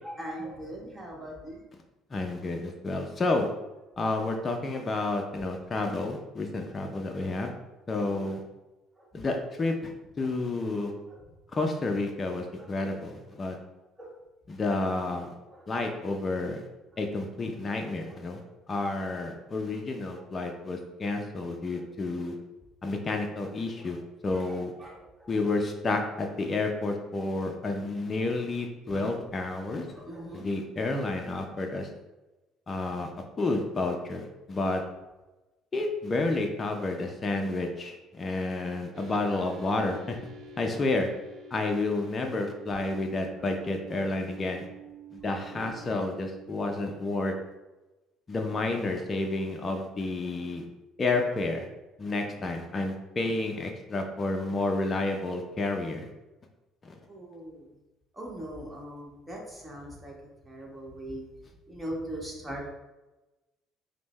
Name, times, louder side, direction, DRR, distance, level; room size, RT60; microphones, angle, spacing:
voice 1, 0.0-1.6 4.7-4.9 5.4-5.5 6.8-6.9 8.1-8.3 9.0-9.1 11.1-11.2 12.6-12.7 14.0-14.1 14.8-14.9 15.5-15.6 16.9-17.0 18.0-18.2 18.4-18.5 19.2-19.3 20.1-20.2 21.7-21.8 23.8-23.9 24.3-25.3 29.9-30.5 52.4-52.5 57.1-57.7 58.1-60.2 60.4-61.3 61.7-62.7, right 1 dB, 15° right, -3 dB, 1.3 m, -41 dB
voice 2, 2.1-3.5 4.0-7.5 7.9-8.4 9.1-9.9 10.2-10.9 11.5-13.6 14.5-15.3 15.7-16.6 17.0-18.4 18.7-22.4 22.8-24.7 25.3-29.9 30.3-31.9 32.7-33.1 33.4-34.8 35.7-40.2 40.6-41.1 41.5-44.7 45.1-47.3 48.3-50.6 51.0-51.6 52.0-56.1 56.8-57.0, left 2 dB, 30° left, 3 dB, 0.5 m, -30 dB
sound 1, 38.9-47.2, right 3 dB, 60° right, 0.7 m, -48 dB
5.1 x 2.1 x 3.1 m, 1.1 s
supercardioid pair, 75°, 0 cm